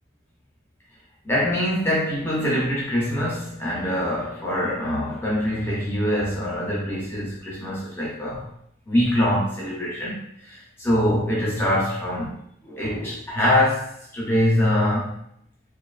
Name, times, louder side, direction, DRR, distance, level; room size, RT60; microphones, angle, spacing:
voice 1, 1.2-8.5 8.9-15.2, left 1 dB, 10° left, -6 dB, 0.5 m, -24 dB
2.6 x 2.3 x 2.3 m, 0.73 s
head